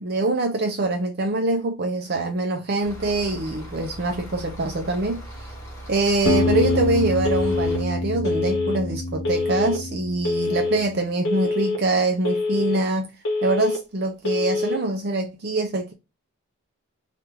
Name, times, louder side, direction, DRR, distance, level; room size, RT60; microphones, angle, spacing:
voice 1, 0.0-5.2 5.9-13.1 13.4-15.9, right 2 dB, 45° right, 0.5 m, -24 dB
sound 1, 2.8-7.8, right 1 dB, 15° left, 1.3 m, -39 dB
Telephone, 6.2-6.8 7.2-7.8 8.2-8.8 9.2-9.8 10.2-10.8 11.2-11.8 12.2-12.8 13.2-13.8 14.2-14.8, left 3 dB, 55° left, 0.9 m, -25 dB
sound 2, 6.3-10.9, left 2 dB, 80° left, 0.6 m, -27 dB
3.3 x 2.4 x 4.4 m
head